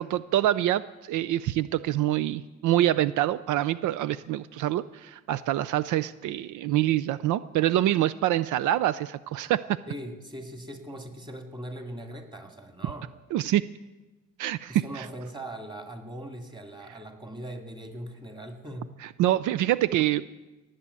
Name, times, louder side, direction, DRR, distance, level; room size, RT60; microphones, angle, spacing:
voice 1, 0.0-9.8 13.3-13.6 14.4-15.1 19.0-20.4, right 13 dB, 80° right, 16 dB, 0.5 m, -26 dB
voice 2, 9.9-13.1 14.7-18.9, right 1 dB, 15° right, 4 dB, 2.3 m, -40 dB
18.0 x 7.7 x 8.3 m, 1.1 s
cardioid pair, 90°, 30 cm